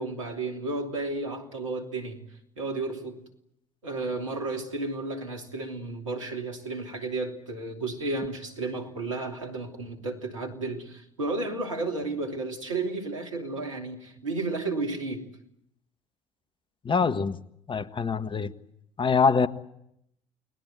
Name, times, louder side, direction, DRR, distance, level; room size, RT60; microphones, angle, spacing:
voice 1, 0.0-2.2 2.6-3.2 3.8-15.4, right 3 dB, 90° right, 3.0 m, -32 dB
voice 2, 16.8-17.4 17.7-18.5 19.0-19.5, left 5 dB, 30° left, 1.5 m, -24 dB
29.5 x 20.0 x 8.0 m
hypercardioid pair, 55°, 16 cm